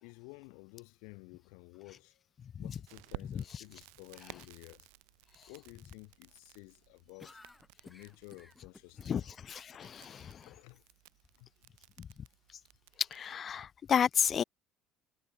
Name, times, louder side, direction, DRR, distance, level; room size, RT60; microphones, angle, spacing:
voice 1, 0.0-2.2 2.6-4.9 5.5-7.4 7.8-9.2 10.4-10.8 11.3-11.5, left 39 dB, 75° left, 0.9 m, -53 dB
voice 2, 2.4-2.8 3.3-3.6 5.4-5.5 9.0-10.5 12.0-12.1 13.0-14.4, left 8 dB, 45° left, 0.4 m, -33 dB
Crackle, 2.9-13.4, right 40 dB or more, 75° right, 1.2 m, -55 dB
sound 1, 7.2-10.2, left 2 dB, 15° left, 1.5 m, -56 dB
hypercardioid pair, 65°, 0 cm